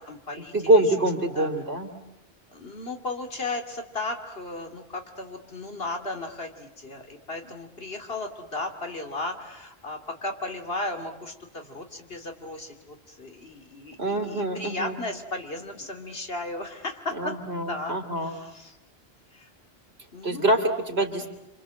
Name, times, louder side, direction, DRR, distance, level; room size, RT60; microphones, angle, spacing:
voice 1, 0.0-1.1 1.3-1.5 2.5-17.3 17.7-18.8 19.3-19.5 20.1-20.6, left 2 dB, 70° left, 4 dB, 3.1 m, -35 dB
voice 2, 0.5-1.9 14.0-15.0 17.1-18.3 20.2-21.3, right 1 dB, 80° right, 5 dB, 3.3 m, -24 dB
28.5 x 27.0 x 7.8 m, 0.93 s
omnidirectional pair, 1.0 m